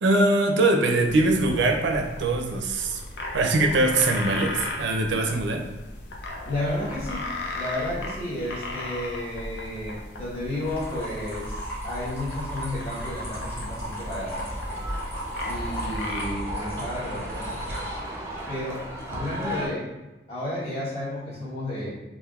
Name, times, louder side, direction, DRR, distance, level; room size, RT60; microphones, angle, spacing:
voice 1, 0.0-3.0 3.3-5.6, right 2 dB, 90° right, 3 dB, 0.4 m, -22 dB
sound 1, 1.0-16.2, left 2 dB, 75° left, 0.5 m, -36 dB
voice 2, 6.4-7.2 7.5-14.6 15.5-18.0 18.5-19.9 20.3-21.9, left 1 dB, 35° left, -10 dB, 1.1 m, -32 dB
sound 2, 10.6-18.0, right 1 dB, 15° left, 1.1 m, -35 dB
sound 3, 14.5-19.7, equal, 15° right, 0.4 m, -36 dB
3.4 x 2.4 x 2.3 m, 1.0 s
head